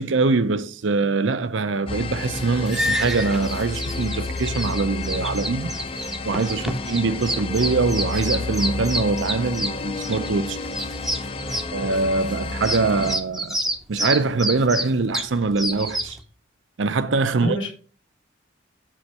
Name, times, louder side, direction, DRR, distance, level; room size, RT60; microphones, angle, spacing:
voice 1, 0.0-5.7 6.2-10.6 11.7-13.6 13.9-16.2 16.8-17.6, right 3 dB, 75° right, 0.6 m, -23 dB
sound 1, 1.9-13.2, left 3 dB, 30° left, 0.5 m, -31 dB
sound 2, 2.3-16.2, equal, ahead, 0.7 m, -29 dB
Bass guitar, 9.8-12.8, left 4 dB, 50° left, 1.2 m, -40 dB
voice 2, 11.3-11.9 17.3-17.7, equal, 70° left, 2.2 m, -30 dB
7.7 x 4.4 x 4.7 m
head